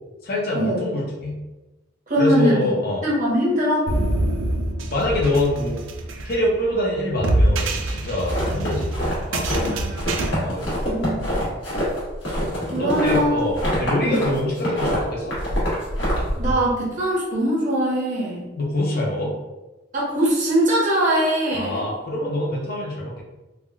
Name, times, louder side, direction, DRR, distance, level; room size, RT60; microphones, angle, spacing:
voice 1, 0.2-1.4 2.2-3.0 4.9-5.8 6.2-8.9 9.3-9.6 10.4-10.7 12.8-15.3 18.6-19.3 21.5-23.2, left 1 dB, 50° left, -3 dB, 0.7 m, -24 dB
voice 2, 2.1-2.7 3.0-3.9 9.6-11.2 12.7-13.3 14.0-14.3 16.3-18.5 19.9-21.8, equal, 40° right, -6 dB, 1.0 m, -22 dB
sound 1, 3.9-10.3, right 1 dB, 85° right, 0.4 m, -25 dB
sound 2, 8.2-9.7 10.0-14.3 14.6-16.5, equal, 80° left, 1.3 m, -25 dB
3.5 x 2.3 x 2.3 m, 1.1 s
head